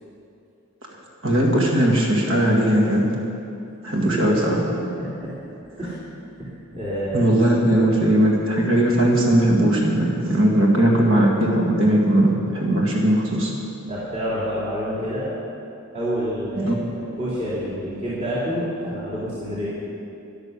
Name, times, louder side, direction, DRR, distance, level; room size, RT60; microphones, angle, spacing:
voice 1, 1.2-3.1 3.8-4.4 7.1-13.5 16.6-16.7, right 1 dB, 60° right, -1 dB, 2.1 m, -19 dB
voice 2, 3.9-4.4 4.8-5.3 5.8-6.0 6.4-7.3 13.9-15.3 15.9-19.7, equal, 30° right, -11 dB, 2.9 m, -28 dB
12.0 x 11.0 x 6.8 m, 2.7 s
head